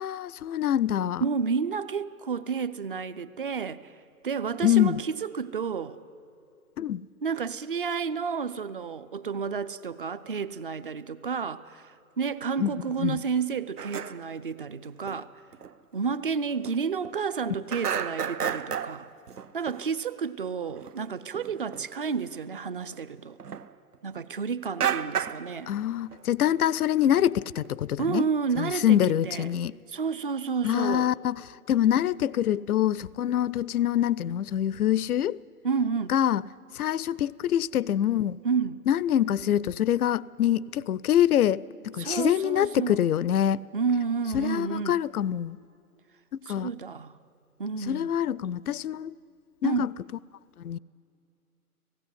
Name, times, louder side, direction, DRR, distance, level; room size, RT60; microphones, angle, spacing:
voice 1, 0.0-1.2 4.6-5.0 6.8-7.0 12.6-12.7 13.0-13.2 25.7-28.3 28.6-29.7 30.6-31.4 31.7-35.4 36.1-36.4 36.7-38.4 38.9-43.6 44.3-45.6 46.5-46.7 47.9-49.2 49.6-49.9 50.6-50.8, left 11 dB, 70° left, 0.6 m, -25 dB
voice 2, 1.2-3.9 4.2-6.0 7.2-15.3 15.9-19.1 19.5-23.4 24.0-25.7 28.0-29.5 29.9-31.1 35.6-36.2 38.4-38.8 42.0-43.0 43.7-45.0 46.5-47.1 47.6-48.1 49.6-49.9, right 5 dB, 35° right, 0.5 m, -30 dB
sound 1, 13.8-14.3 15.1-15.2 15.5-15.7 16.1-16.2 16.5-17.4 17.7-19.9 20.7-20.9 21.3-21.9 22.3-24.2 24.8-25.5 25.9-26.2 26.5-26.6 26.9-27.7, right 8 dB, 80° right, 0.9 m, -33 dB
17.0 x 17.0 x 9.6 m
figure-of-eight pair, 140°, 46 cm